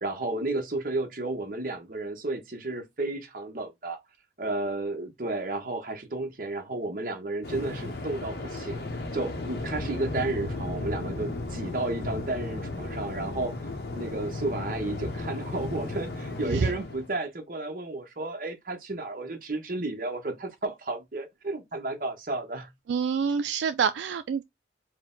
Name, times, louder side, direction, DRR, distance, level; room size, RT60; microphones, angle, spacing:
voice 1, 0.0-4.0 4.4-8.8 9.1-13.5 13.9-22.7, right 2 dB, 50° right, 0.9 m, -32 dB
Waves surf, 7.4-17.1, left 2 dB, 65° left, 0.8 m, -35 dB
voice 2, 22.9-24.4, right 6 dB, 85° right, 0.3 m, -26 dB
4.6 x 2.1 x 3.7 m
head